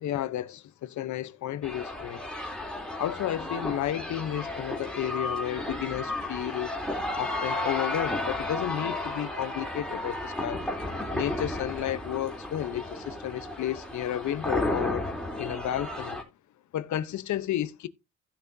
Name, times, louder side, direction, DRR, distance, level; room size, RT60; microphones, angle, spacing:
voice 1, 0.0-2.2 3.0-6.7 7.2-10.6 11.1-15.1 15.4-16.2 16.7-17.9, left 12 dB, 70° left, 0.9 m, -32 dB
sound 1, 1.6-16.2, left 1 dB, 5° left, 3.5 m, -33 dB
16.0 x 6.0 x 2.7 m
cardioid pair, 90°, 30 cm